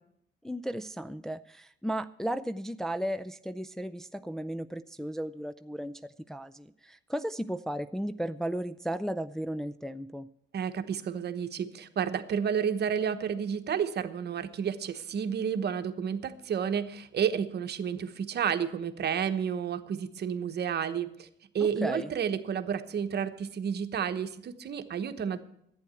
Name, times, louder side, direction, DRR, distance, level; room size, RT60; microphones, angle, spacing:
voice 1, 0.4-10.3 21.6-22.1, right 1 dB, ahead, 9 dB, 0.4 m, -35 dB
voice 2, 10.5-21.3 21.5-25.4, right 7 dB, 55° right, 10 dB, 1.1 m, -31 dB
11.5 x 9.1 x 8.9 m, 0.72 s
cardioid pair, 90°, 20 cm